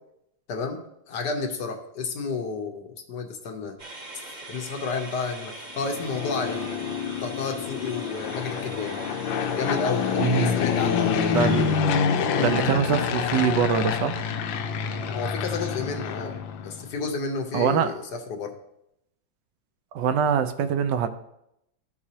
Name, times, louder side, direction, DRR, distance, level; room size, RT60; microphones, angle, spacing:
voice 1, 0.5-0.8 1.1-3.8 4.5-6.7 7.2-9.0 9.5-10.1 10.4-11.1 14.8-16.4 16.6-18.5, left 4 dB, 65° left, 4 dB, 1.3 m, -31 dB
sound 1, 3.8-12.4, right 2 dB, 30° right, 0.9 m, -42 dB
Fixed-wing aircraft airplane, 5.8-16.9, left 7 dB, 85° left, 1.4 m, -27 dB
voice 2, 10.2-10.6 11.3-11.7 12.4-14.2 17.5-17.9 19.9-21.1, right 7 dB, 75° right, 9 dB, 1.2 m, -23 dB
13.0 x 4.8 x 2.8 m, 0.80 s
omnidirectional pair, 2.0 m